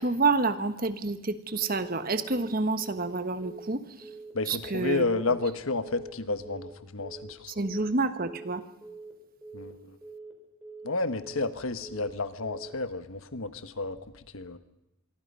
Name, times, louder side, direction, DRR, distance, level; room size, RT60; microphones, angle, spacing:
voice 1, 0.0-3.8 4.5-5.2 7.6-8.6, right 3 dB, 45° right, 10 dB, 1.2 m, -28 dB
Telephone, 1.6-1.9 2.2-2.5 2.8-3.1 3.4-3.7 4.0-4.3 4.6-4.9 5.2-5.5 5.8-6.1 6.4-6.7 7.0-7.3 7.6-7.9 8.2-8.5 8.8-9.1 9.4-9.7 10.0-10.3 10.6-10.9 11.2-11.5 11.8-12.1 12.4-12.7, right 3 dB, 5° right, 5.2 m, -45 dB
voice 2, 4.3-7.5 9.5-10.0 10.8-14.0 14.3-14.6, left 3 dB, 80° left, 11 dB, 1.3 m, -31 dB
25.5 x 23.0 x 5.5 m, 0.90 s
head